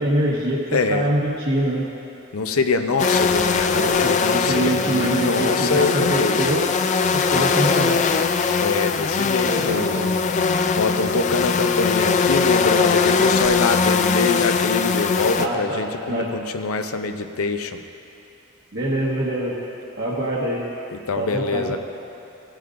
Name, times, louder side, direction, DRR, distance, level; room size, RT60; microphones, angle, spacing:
voice 1, 0.0-1.8 3.7-6.7 7.1-8.0 9.5-10.1 15.4-16.3 18.7-19.5 20.0-20.6 21.2-21.8, right 1 dB, 50° right, -6 dB, 1.2 m, -24 dB
voice 2, 0.7-1.1 2.3-6.4 8.6-10.0 10.8-17.8 20.9-21.8, left 4 dB, 85° left, 7 dB, 0.6 m, -24 dB
sound 1, 3.0-15.5, left 5 dB, 35° left, 0.3 m, -21 dB
17.0 x 11.5 x 2.5 m, 2.6 s
head